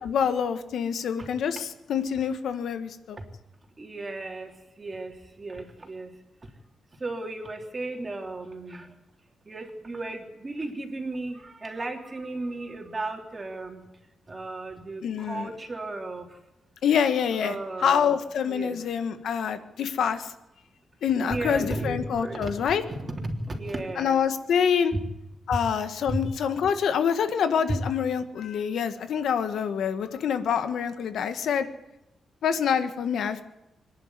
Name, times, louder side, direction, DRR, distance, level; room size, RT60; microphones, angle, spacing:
voice 1, 0.0-3.2 15.0-15.5 16.8-20.3 21.0-22.8 24.0-24.9 25.5-31.6 32.4-33.4, left 7 dB, 75° left, 9 dB, 1.6 m, -26 dB
voice 2, 3.8-4.5 4.8-5.1 5.4-6.1 7.0-8.9 9.5-13.8 14.3-16.3 17.4-18.1 18.5-18.8 21.1-22.6 22.9-24.2 26.1-26.2 27.7-27.8, right 2 dB, 25° right, 2 dB, 3.5 m, -34 dB
24.5 x 11.0 x 9.7 m, 0.95 s
cardioid pair, 105°, 0 cm